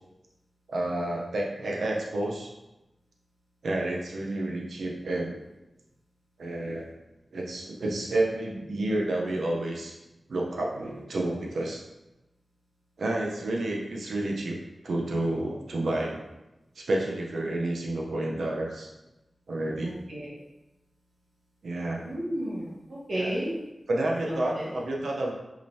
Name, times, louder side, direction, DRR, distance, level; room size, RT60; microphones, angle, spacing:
voice 1, 0.7-2.5 3.6-5.4 6.4-6.9 7.3-9.9 10.3-11.8 13.0-14.6 14.8-16.2 16.8-18.9 19.5-19.9 21.6-22.1 23.1-23.3 23.9-25.3, right 1 dB, 85° right, -1 dB, 0.7 m, -30 dB
voice 2, 19.8-20.3 22.0-23.5 24.3-24.7, right 1 dB, 65° right, -6 dB, 1.2 m, -33 dB
5.0 x 3.2 x 2.8 m, 0.98 s
cardioid pair, 45°, 0 cm